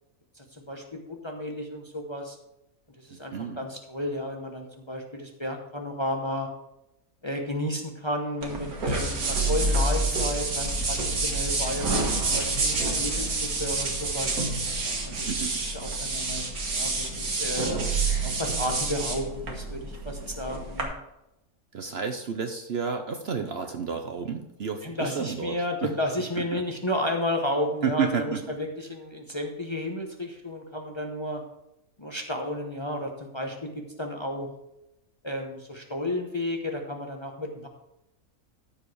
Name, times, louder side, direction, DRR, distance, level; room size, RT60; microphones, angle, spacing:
voice 1, 0.4-2.4 3.0-6.5 7.2-14.4 15.0-15.2 15.6-17.7 18.2-20.9 24.8-31.4 32.0-33.7 34.0-34.5 35.2-37.7, left 1 dB, 25° left, 2 dB, 0.8 m, -32 dB
voice 2, 3.1-3.6 15.1-15.6 21.7-25.9 26.4-26.6 27.8-28.4, right 6 dB, 55° right, 6 dB, 0.9 m, -31 dB
sound 1, 8.4-20.8, right 3 dB, 80° right, 2.0 m, -28 dB
14.0 x 4.9 x 4.8 m, 0.87 s
omnidirectional pair, 1.5 m